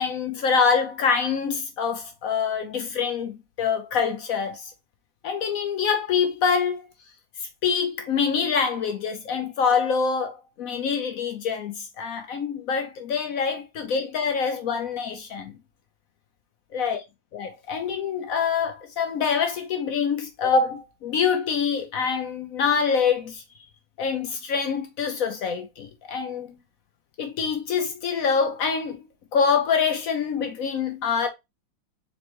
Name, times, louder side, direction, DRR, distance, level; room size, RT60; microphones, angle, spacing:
voice 1, 0.0-4.7 5.2-6.9 7.6-15.5 16.7-17.0 17.3-23.4 24.0-26.6 27.2-29.0 29.3-31.3, left 6 dB, 70° left, 0.8 m, -25 dB
4.1 x 3.2 x 2.9 m
omnidirectional pair, 2.0 m